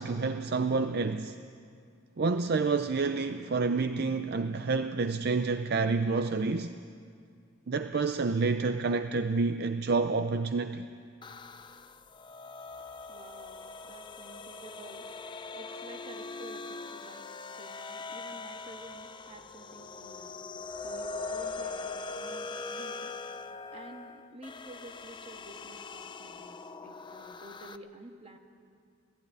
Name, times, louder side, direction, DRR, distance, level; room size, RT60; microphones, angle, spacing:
voice 1, 0.0-1.4 2.2-6.8 7.7-10.8, right 4 dB, 50° right, 0.5 m, -28 dB
sound 1, 11.2-27.8, left 3 dB, 20° left, 0.5 m, -42 dB
voice 2, 13.1-15.1 15.5-17.3 17.6-20.3 20.8-23.2 23.7-28.4, right 1 dB, 30° right, 1.5 m, -50 dB
18.0 x 15.0 x 9.7 m
head